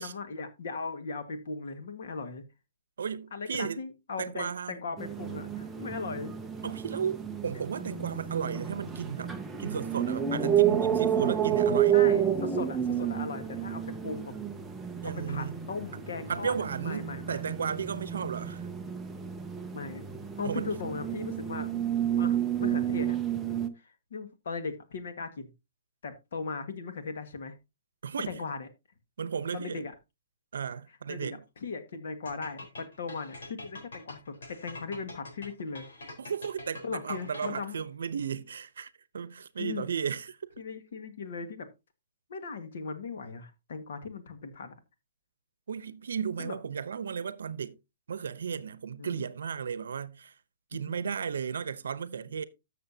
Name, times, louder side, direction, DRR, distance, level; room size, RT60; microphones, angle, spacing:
voice 1, 0.0-2.4 3.3-6.4 8.0-8.1 11.9-14.3 15.0-17.5 19.7-20.0 20.4-21.7 22.1-23.2 23.7-25.5 26.0-27.5 28.3-28.7 29.5-29.9 31.1-35.8 36.8-37.8 39.6-39.9 40.6-41.7 42.3-44.8 46.4-46.6 49.0-49.2 50.9-51.0, left 4 dB, 55° left, 1.6 m, -38 dB
voice 2, 3.0-3.8 4.2-4.8 6.6-9.3 9.6-12.0 15.0-15.6 16.3-18.6 20.4-20.7 28.0-28.4 29.2-29.8 30.5-31.4 36.2-40.4 45.7-47.8 48.1-50.3 50.7-52.4, right 7 dB, 70° right, 0.8 m, -34 dB
sound 1, 5.0-23.7, right 9 dB, 5° right, 0.5 m, -30 dB
sound 2, 32.3-37.8, left 2 dB, 90° left, 4.0 m, -45 dB
13.5 x 6.7 x 2.8 m
hypercardioid pair, 180°, 0 cm